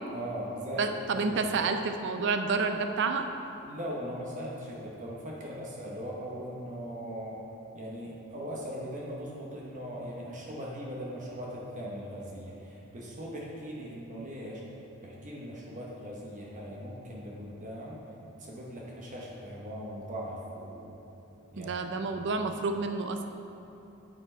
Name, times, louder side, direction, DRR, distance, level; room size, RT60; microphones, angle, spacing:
voice 1, 0.1-0.8 1.1-1.4 3.7-7.4 7.7-14.6 15.0-18.0 18.4-20.9 21.5-22.0, equal, 35° right, -3 dB, 0.9 m, -39 dB
voice 2, 0.8-3.3 21.6-23.2, right 4 dB, 55° right, 7 dB, 0.4 m, -29 dB
9.1 x 4.4 x 4.3 m, 2.9 s
head